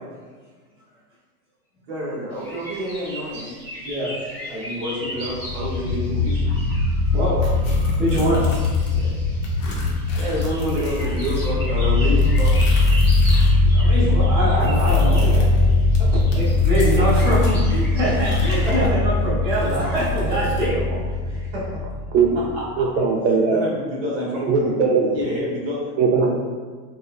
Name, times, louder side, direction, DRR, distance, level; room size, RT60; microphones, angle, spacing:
voice 1, 1.9-3.6 4.5-6.5 8.9-9.1 10.1-12.7 16.0-16.1 18.7-18.8 21.5-21.8 22.3-22.9 23.5-24.5 25.1-25.8, equal, 40° right, -7 dB, 0.9 m, -28 dB
sound 1, 2.3-18.8, equal, 20° left, 0.3 m, -38 dB
sound 2, 5.2-22.5, left 2 dB, 85° left, 0.9 m, -20 dB
voice 2, 7.1-7.5 8.0-8.5 13.6-15.5 16.3-21.0 21.3-21.5 22.3-22.4, equal, 5° right, -16 dB, 0.8 m, -24 dB
sound 3, 7.4-9.0 9.4-13.6 13.9-17.6 18.1-20.7, left 1 dB, 50° left, 0.7 m, -35 dB
voice 3, 22.8-23.6 24.4-25.2 26.0-26.4, right 5 dB, 85° right, 1 dB, 0.6 m, -19 dB
3.1 x 2.1 x 2.3 m, 1.5 s
supercardioid pair, 165°, 47 cm